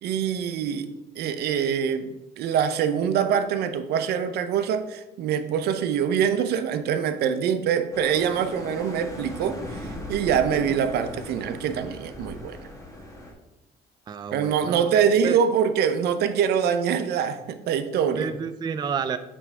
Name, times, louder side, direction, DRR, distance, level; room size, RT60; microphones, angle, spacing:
voice 1, 0.0-0.9 1.2-12.6 14.3-18.3, right 7 dB, 75° right, 0.6 m, -24 dB
sound 1, 7.9-13.3, left 1 dB, 20° left, 1.6 m, -38 dB
voice 2, 14.1-14.8 15.2-15.4 18.2-19.2, right 6 dB, 25° right, 0.3 m, -30 dB
7.5 x 3.3 x 4.7 m
cardioid pair, 110°, 17 cm